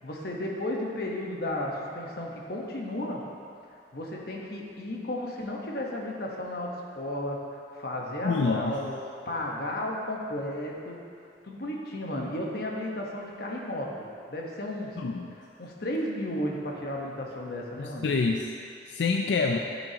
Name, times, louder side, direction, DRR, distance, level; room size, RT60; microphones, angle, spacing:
voice 1, 0.0-3.2 3.9-7.4 7.8-9.0 9.2-11.0 11.4-14.0 14.3-15.0 15.6-18.0 19.5-19.6, left 1 dB, 60° left, -1 dB, 1.2 m, -33 dB
voice 2, 8.2-8.8 15.0-15.3 17.8-18.5 18.9-19.6, left 4 dB, 90° left, 2 dB, 0.4 m, -27 dB
12.0 x 6.3 x 2.9 m, 2.4 s
head